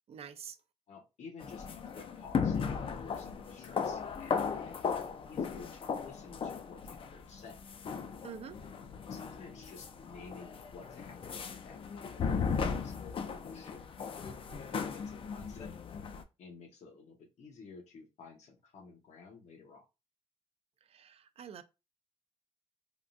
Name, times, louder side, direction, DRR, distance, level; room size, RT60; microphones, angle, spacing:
voice 1, 0.1-0.6 8.2-8.6 20.9-21.6, right 7 dB, 60° right, 0.4 m, -46 dB
voice 2, 0.9-7.6 9.1-12.2 12.6-15.7 16.4-19.9, left 4 dB, 80° left, 0.9 m, -53 dB
sound 1, 1.4-16.2, left 6 dB, 50° left, 0.4 m, -37 dB
3.6 x 2.3 x 2.5 m
cardioid pair, 95°, 12 cm